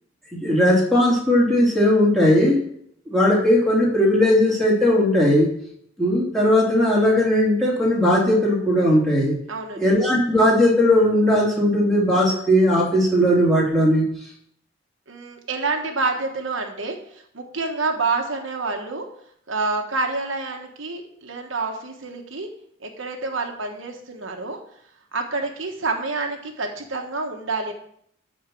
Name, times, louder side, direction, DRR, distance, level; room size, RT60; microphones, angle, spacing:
voice 1, 0.3-2.6 3.1-5.5 6.0-9.4 9.8-14.0, left 1 dB, ahead, -7 dB, 2.8 m, -18 dB
voice 2, 9.5-10.0 15.1-19.1 19.5-22.5 22.8-24.6 25.1-27.7, right 3 dB, 70° right, 2 dB, 1.3 m, -28 dB
12.5 x 4.4 x 6.0 m, 0.69 s
head